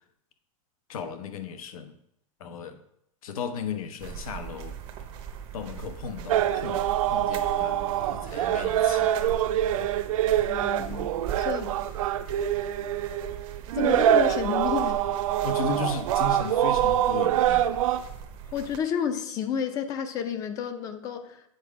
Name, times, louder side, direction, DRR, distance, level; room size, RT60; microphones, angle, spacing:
voice 1, 0.9-2.0 2.4-2.8 3.2-4.7 5.5-9.3 15.4-17.7, left 4 dB, 90° left, 8 dB, 1.0 m, -35 dB
sound 1, 4.0-18.8, right 8 dB, 30° right, 0.7 m, -40 dB
sound 2, 6.3-18.0, right 11 dB, 70° right, 0.5 m, -25 dB
voice 2, 10.5-11.8 13.7-15.0 18.5-21.4, left 8 dB, 20° left, 10 dB, 0.4 m, -31 dB
8.0 x 5.0 x 4.7 m, 0.75 s
supercardioid pair, 170°, 18 cm